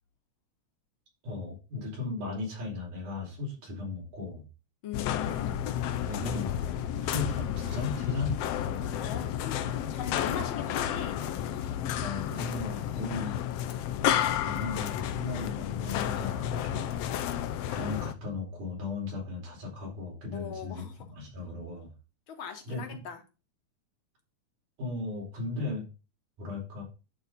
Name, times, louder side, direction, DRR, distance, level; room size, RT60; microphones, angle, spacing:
voice 1, 1.2-4.5 6.1-8.4 12.0-13.4 14.4-16.9 17.7-21.9 22.7-23.0 24.8-25.9 26.4-26.8, left 3 dB, 80° right, -2 dB, 5.9 m, -36 dB
voice 2, 4.8-5.6 9.0-9.6 9.9-11.2 20.3-21.0 22.3-23.2, left 7 dB, 50° left, 5 dB, 1.8 m, -39 dB
sound 1, 4.9-18.1, left 10 dB, 75° left, 1.4 m, -31 dB
11.5 x 4.1 x 5.2 m, 0.31 s
omnidirectional pair, 3.5 m